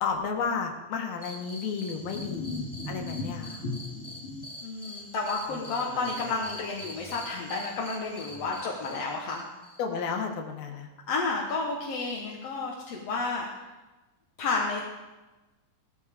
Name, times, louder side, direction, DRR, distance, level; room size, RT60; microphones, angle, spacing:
voice 1, 0.0-2.5 2.9-3.6 9.8-10.9, left 5 dB, 80° left, 3 dB, 3.3 m, -32 dB
sound 1, 1.2-10.2, left 1 dB, 10° left, 2.9 m, -45 dB
sound 2, 1.8-4.4 5.4-7.3 8.3-8.6, left 2 dB, 40° left, 3.1 m, -38 dB
voice 2, 4.6-9.4 11.1-13.5 14.4-14.8, left 3 dB, 55° left, -2 dB, 2.0 m, -31 dB
18.5 x 13.0 x 3.7 m, 1.1 s
omnidirectional pair, 4.3 m